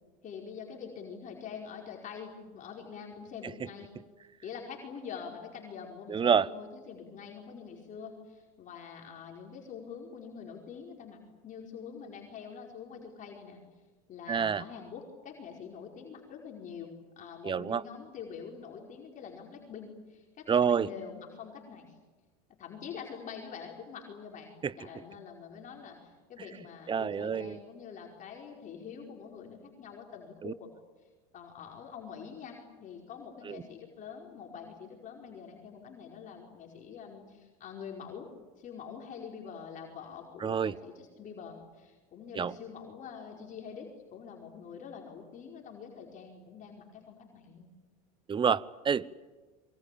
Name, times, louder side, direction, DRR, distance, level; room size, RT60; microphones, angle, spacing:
voice 1, 0.2-3.9 4.4-11.2 11.4-13.6 14.1-22.0 22.6-30.7 31.3-38.3 38.6-47.7, left 6 dB, 40° left, 0 dB, 5.2 m, -45 dB
voice 2, 6.1-6.5 14.3-14.6 17.4-17.8 20.5-20.9 24.6-24.7 26.9-27.6 30.4-30.5 33.5-33.6 40.4-40.8 42.4-42.5 48.3-49.1, right 7 dB, 25° right, 20 dB, 0.9 m, -27 dB
27.0 x 23.5 x 8.7 m, 1.3 s
hypercardioid pair, 90°, 19 cm